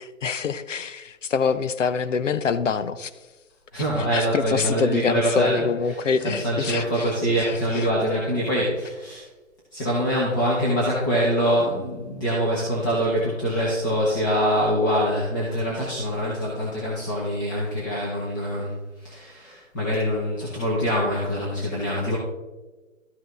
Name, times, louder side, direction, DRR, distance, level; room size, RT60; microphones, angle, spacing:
voice 1, 0.0-3.1 4.0-7.1 7.4-8.2, left 5 dB, 65° left, 13 dB, 0.8 m, -26 dB
voice 2, 3.7-5.6 5.9-6.0 6.2-9.2 9.7-22.2, equal, 15° left, -5 dB, 1.1 m, -24 dB
12.5 x 6.2 x 3.4 m, 1.1 s
hypercardioid pair, 165°, 40 cm